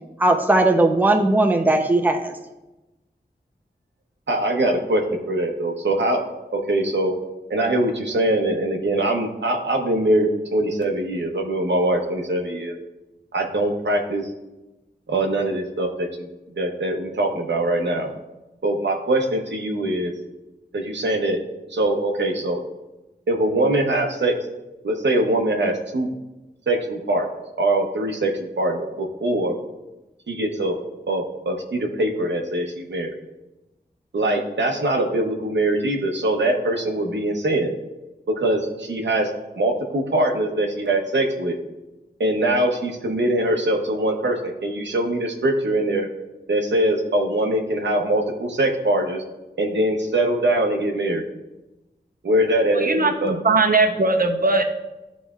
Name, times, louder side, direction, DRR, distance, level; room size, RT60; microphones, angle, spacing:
voice 1, 0.2-2.3, right 2 dB, 10° right, 3 dB, 0.7 m, -18 dB
voice 2, 4.3-5.0 5.3-6.2 6.5-7.1 7.5-12.7 13.3-14.3 15.1-16.1 16.6-18.1 18.6-20.1 20.7-21.4 21.7-22.6 23.3-24.3 24.8-26.1 26.7-27.3 27.6-28.3 28.6-29.5 30.3-30.7 31.1-33.1 34.1-37.7 38.4-39.3 39.6-41.5 42.2-46.1 46.5-49.2 49.6-51.2 52.2-53.4, right 1 dB, 80° right, 2 dB, 0.9 m, -22 dB
voice 3, 52.7-54.6, right 3 dB, 50° right, 4 dB, 0.8 m, -19 dB
11.0 x 4.1 x 2.4 m, 1.0 s
wide cardioid pair, 55°, 18 cm